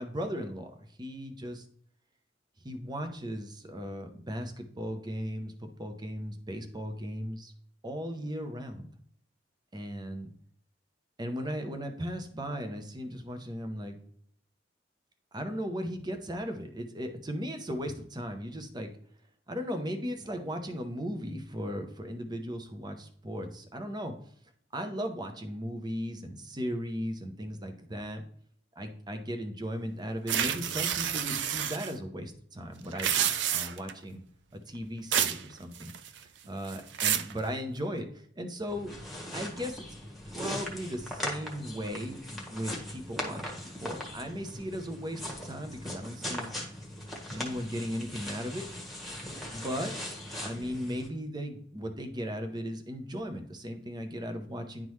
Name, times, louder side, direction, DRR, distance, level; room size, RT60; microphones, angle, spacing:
voice 1, 0.0-1.6 2.6-7.5 7.8-8.9 9.7-10.3 11.2-14.0 15.3-18.9 19.5-24.2 24.7-28.2 28.8-34.2 34.5-35.9 36.2-38.9 39.3-39.9 40.2-46.5 47.3-48.7 49.5-50.0 50.4-54.9, equal, 25° right, 7 dB, 0.8 m, -37 dB
sound 1, 30.3-31.9 32.9-33.9 35.1-35.4 35.8-36.2 36.7-37.3, right 9 dB, 75° right, 0.5 m, -29 dB
sound 2, 38.7-51.1, left 1 dB, ahead, 1.4 m, -40 dB
10.0 x 3.8 x 3.2 m, 0.64 s
head